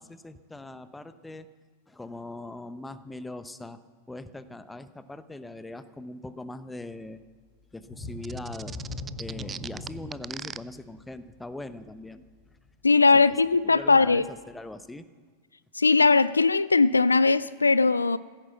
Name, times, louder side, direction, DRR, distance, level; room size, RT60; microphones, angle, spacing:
voice 1, 0.0-1.5 1.9-3.8 4.1-7.2 7.7-8.8 9.2-12.3 13.1-13.2 13.6-15.1, left 2 dB, 5° left, 0.8 m, -41 dB
sound 1, 7.8-13.3 13.7-13.9 14.4-14.5, left 2 dB, 20° left, 3.7 m, -41 dB
sound 2, 8.2-10.6, right 7 dB, 20° right, 0.4 m, -38 dB
voice 2, 12.8-14.2 15.8-18.2, left 4 dB, 80° left, 0.3 m, -20 dB
16.0 x 10.0 x 7.1 m
figure-of-eight pair, 90°, 0 cm